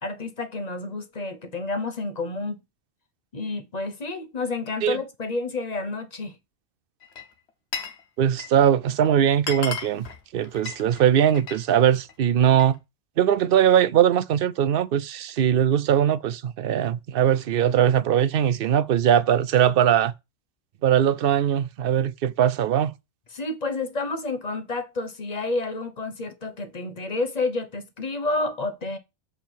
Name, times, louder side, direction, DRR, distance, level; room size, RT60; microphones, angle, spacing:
voice 1, 0.0-2.6 3.3-6.3 23.3-29.0, left 3 dB, 35° left, 1.0 m, -30 dB
Glass, 7.0-8.0 8.3-8.7 9.1-9.2 9.4-11.6 12.0-12.8, left 5 dB, 60° left, 1.3 m, -35 dB
voice 2, 8.2-10.1 10.3-12.8 13.2-20.1 20.8-22.9, right 9 dB, 60° right, 0.6 m, -20 dB
7.4 x 4.6 x 4.5 m
omnidirectional pair, 1.2 m